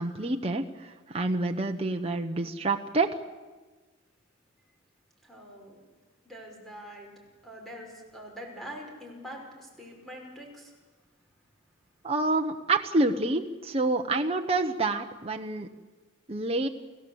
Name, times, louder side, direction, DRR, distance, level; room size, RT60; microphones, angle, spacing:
voice 1, 0.0-3.2 12.0-15.7 16.3-16.7, right 2 dB, 30° right, 3 dB, 1.0 m, -28 dB
voice 2, 5.2-5.8 6.2-7.1 7.4-10.7, equal, ahead, 0 dB, 5.4 m, -44 dB
29.5 x 17.0 x 8.0 m, 1.3 s
head